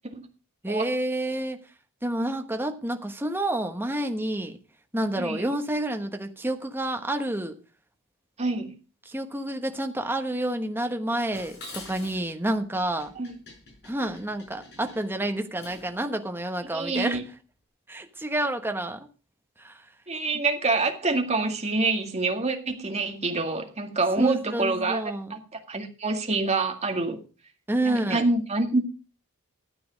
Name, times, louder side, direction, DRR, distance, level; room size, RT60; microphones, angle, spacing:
voice 1, 0.6-1.6 2.0-4.6 4.9-7.6 9.0-13.1 13.8-17.2 17.9-19.1 19.6-19.9 24.2-25.4 27.7-28.3, right 1 dB, 10° right, 1.2 m, -29 dB
voice 2, 5.2-5.5 8.4-8.7 13.2-13.3 16.7-17.2 20.1-25.0 25.3-27.2 27.8-28.8, right 3 dB, 30° right, 2.0 m, -26 dB
Dishes pots and pans, 11.3-16.0, left 2 dB, 50° left, 5.8 m, -46 dB
13.0 x 8.8 x 5.1 m
head